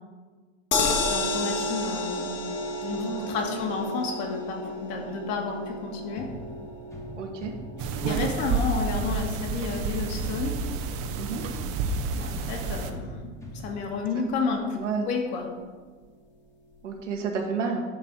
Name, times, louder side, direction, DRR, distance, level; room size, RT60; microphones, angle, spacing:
sound 1, 0.7-12.9 13.3-13.4 13.7-13.8, left 2 dB, 30° left, 1.4 m, -33 dB
voice 1, 1.1-2.3 2.8-6.3 8.0-10.5 12.1-13.3 13.6-14.8 15.1-15.5, left 4 dB, 45° left, 0 dB, 1.9 m, -31 dB
voice 2, 2.9-3.6 5.0-5.3 7.2-7.5 11.2-11.4 14.7-15.1 16.8-17.8, right 5 dB, 65° right, 2 dB, 1.6 m, -31 dB
sound 2, 6.2-14.2, right 1 dB, 5° left, 1.4 m, -42 dB
sound 3, 7.8-12.9, right 4 dB, 35° right, 0.8 m, -30 dB
10.5 x 4.1 x 6.1 m, 1.4 s
figure-of-eight pair, 90°, 39 cm